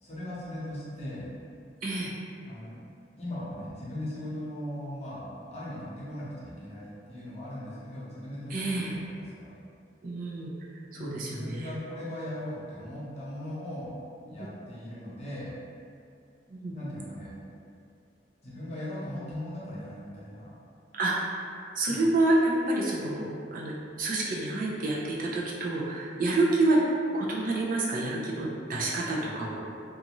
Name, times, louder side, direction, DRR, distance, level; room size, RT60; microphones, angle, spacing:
voice 1, 0.0-1.3 2.4-2.8 3.2-9.5 10.9-14.0 14.2-15.5 16.7-17.3 18.4-20.5 21.9-22.0, left 1 dB, 35° left, -9 dB, 0.8 m, -38 dB
voice 2, 1.8-2.1 8.5-8.9 10.0-10.5 11.0-11.7 16.5-16.7 21.0-21.2 21.6-26.8 27.1-29.6, right 2 dB, 50° right, -4 dB, 0.4 m, -28 dB
2.6 x 2.4 x 2.9 m, 2.3 s
head